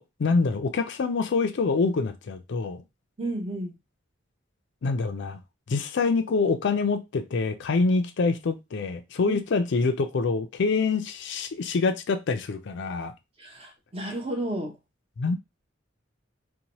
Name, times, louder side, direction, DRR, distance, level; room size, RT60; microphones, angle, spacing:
voice 1, 0.0-2.8 4.8-5.4 5.7-13.1 15.2-15.4, left 4 dB, 60° left, 0.4 m, -26 dB
voice 2, 3.2-3.7 9.3-9.4 13.4-14.8, right 1 dB, 30° right, 0.7 m, -32 dB
2.7 x 2.2 x 2.9 m
head